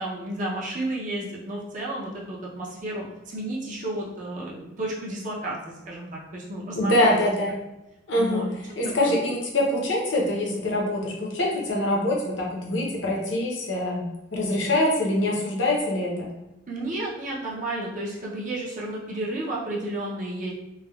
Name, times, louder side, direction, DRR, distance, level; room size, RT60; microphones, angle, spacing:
voice 1, 0.0-7.3 8.2-8.5 9.0-9.1 16.7-20.5, right 1 dB, 40° right, -4 dB, 0.5 m, -32 dB
voice 2, 6.7-7.5 8.1-16.3, left 1 dB, 60° left, -2 dB, 0.6 m, -24 dB
3.3 x 2.1 x 2.2 m, 0.93 s
head